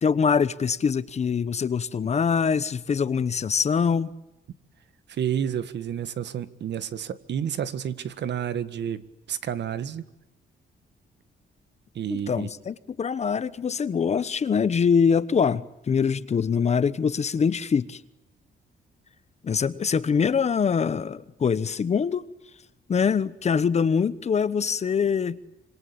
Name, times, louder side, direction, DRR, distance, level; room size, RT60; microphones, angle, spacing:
voice 1, 0.0-4.1 12.1-18.0 19.4-22.2 22.9-25.4, left 6 dB, 35° left, 1.1 m, -24 dB
voice 2, 5.1-9.0 9.3-10.0 12.0-12.5, right 9 dB, 65° right, 1.7 m, -30 dB
27.0 x 25.5 x 8.7 m
wide cardioid pair, 170°, 20 cm